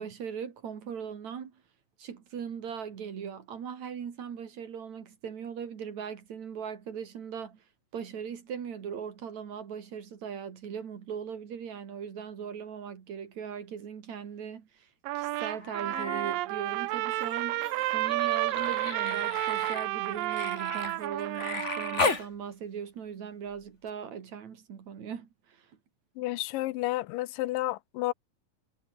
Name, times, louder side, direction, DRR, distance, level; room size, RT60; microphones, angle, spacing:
voice 1, 0.0-1.6 2.0-7.6 7.9-14.9 15.2-17.6 17.9-25.7, right 7 dB, 55° right, 3.5 m, -39 dB
Trumpet, 15.1-22.2, right 18 dB, 90° right, 2.4 m, -31 dB
Human voice, 15.6-16.4 16.7-22.3 23.9-24.0, left 3 dB, 25° left, 2.4 m, -35 dB
voice 2, 26.2-28.1, left 17 dB, 80° left, 2.3 m, -31 dB
omnidirectional pair, 3.9 m